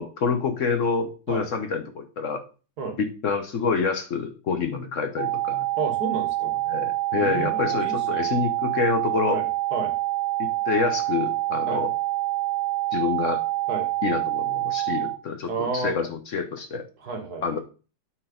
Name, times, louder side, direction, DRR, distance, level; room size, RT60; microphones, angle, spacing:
voice 1, 0.0-2.4 3.0-5.7 6.7-9.4 10.4-11.9 12.9-13.4 14.0-16.8 17.4-17.6, left 5 dB, 55° left, 5 dB, 1.0 m, -27 dB
sound 1, 5.2-15.2, right 17 dB, 75° right, 1.5 m, -26 dB
voice 2, 5.8-6.5 7.1-8.3 9.3-9.9 11.7-11.8 13.7-13.9 15.5-15.9 17.0-17.5, right 4 dB, 55° right, 5 dB, 1.8 m, -31 dB
8.5 x 4.5 x 3.8 m, 0.35 s
omnidirectional pair, 2.1 m